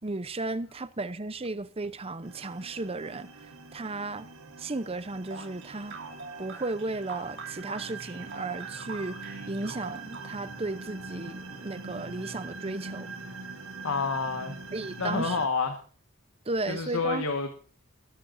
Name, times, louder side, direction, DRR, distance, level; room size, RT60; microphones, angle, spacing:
voice 1, 0.0-4.3 4.6-6.0 6.4-13.1 14.7-15.4 16.5-17.2, right 2 dB, 30° right, 0.8 m, -35 dB
sound 1, 2.2-15.5, right 3 dB, 85° right, 1.6 m, -43 dB
sound 2, 5.3-10.6, right 3 dB, 60° right, 2.9 m, -43 dB
voice 2, 13.8-14.6 15.0-15.8 16.7-17.5, left 4 dB, 80° left, 1.6 m, -29 dB
21.0 x 12.5 x 2.7 m
head